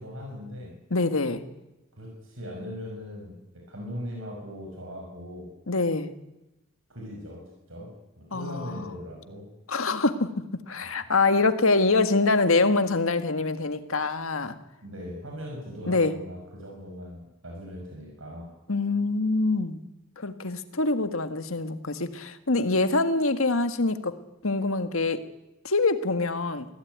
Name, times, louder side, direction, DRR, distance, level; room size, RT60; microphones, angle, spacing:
voice 1, 0.0-0.7 1.9-5.5 6.9-9.5 14.8-18.5, equal, 75° right, 0 dB, 6.2 m, -39 dB
voice 2, 0.9-1.4 5.7-6.1 8.3-8.9 9.7-14.6 15.9-16.1 18.7-19.8 20.2-24.1 24.4-25.2 25.6-26.7, left 3 dB, 80° left, 9 dB, 1.8 m, -25 dB
24.0 x 16.5 x 9.5 m, 0.96 s
head